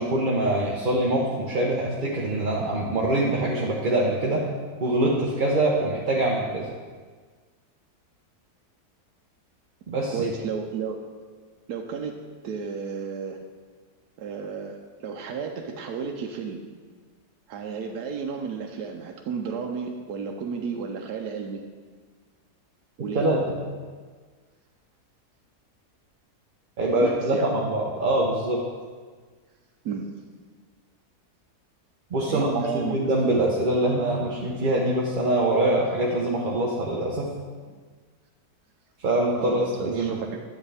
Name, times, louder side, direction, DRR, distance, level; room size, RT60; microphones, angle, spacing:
voice 1, 0.0-4.4 4.8-6.7 9.9-10.3 23.1-23.6 26.8-28.6 32.1-37.3 39.0-40.1, right 1 dB, 40° right, -3 dB, 0.8 m, -24 dB
voice 2, 10.1-11.0 11.7-12.2 12.4-13.4 14.2-16.6 17.5-21.6 23.0-23.3 27.0-27.5 29.8-30.1 32.2-33.0 39.4-40.4, right 6 dB, 80° right, 2 dB, 1.2 m, -32 dB
9.7 x 8.0 x 3.4 m, 1.5 s
omnidirectional pair, 1.7 m